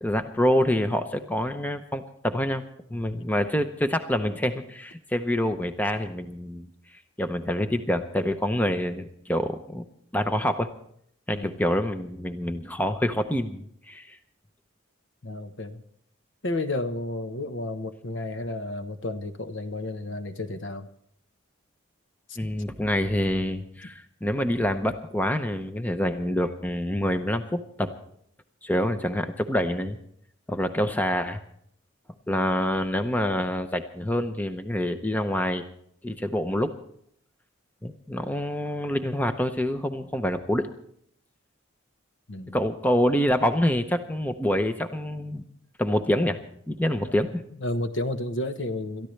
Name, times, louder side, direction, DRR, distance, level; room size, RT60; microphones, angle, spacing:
voice 1, 0.0-2.6 2.9-6.7 7.2-9.9 10.1-10.7 11.3-14.2 22.4-27.9 28.6-30.0 30.5-31.4 32.3-35.6 36.0-36.7 37.8-40.7 42.5-45.4 45.8-46.4 46.7-47.4, left 1 dB, 10° left, 8 dB, 0.7 m, -26 dB
voice 2, 15.2-15.8 16.4-20.9 22.3-22.4 42.3-42.6 47.6-49.1, left 2 dB, 60° left, 9 dB, 1.1 m, -32 dB
28.5 x 13.5 x 3.3 m, 0.67 s
head